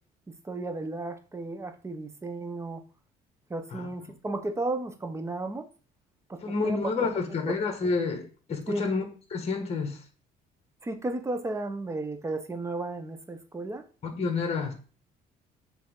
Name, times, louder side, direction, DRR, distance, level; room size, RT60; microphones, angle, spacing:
voice 1, 0.3-2.8 3.5-5.7 6.3-6.8 7.1-7.2 8.7-8.9 10.8-13.8, right 2 dB, 15° right, 8 dB, 0.8 m, -34 dB
voice 2, 6.4-9.0 9.3-10.0 14.0-14.7, left 4 dB, 40° left, 3 dB, 1.5 m, -29 dB
7.6 x 3.5 x 3.7 m, 0.38 s
cardioid pair, 110°, 17 cm